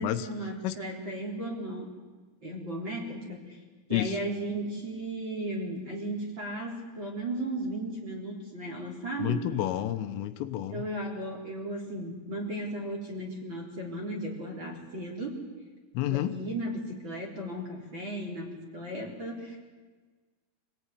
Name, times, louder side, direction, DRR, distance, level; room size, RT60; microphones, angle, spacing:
voice 1, 0.0-1.9 2.4-3.6 3.9-9.5 10.7-15.4 16.0-19.7, right 1 dB, 25° right, -1 dB, 3.7 m, -35 dB
voice 2, 9.2-10.8 16.0-16.4, left 13 dB, 80° left, 9 dB, 3.5 m, -30 dB
26.5 x 19.0 x 9.9 m, 1.4 s
omnidirectional pair, 6.0 m